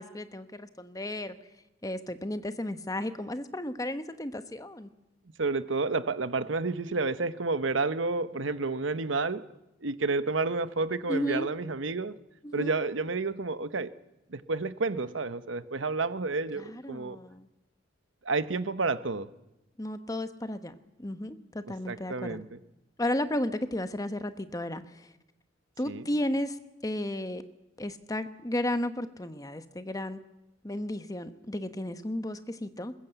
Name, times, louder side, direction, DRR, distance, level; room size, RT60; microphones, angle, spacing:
voice 1, 0.0-1.4 1.8-4.9 11.1-11.5 12.4-12.7 16.6-17.5 19.8-22.4 23.0-25.1 25.8-26.6 26.8-27.4 27.8-30.2 30.6-32.9, left 1 dB, 20° left, 1.0 m, -33 dB
voice 2, 5.4-9.5 9.8-12.2 12.5-13.9 14.3-17.2 18.2-19.3 21.7-22.6 25.8-26.1, right 3 dB, 75° right, 0.9 m, -30 dB
21.0 x 20.5 x 8.0 m
head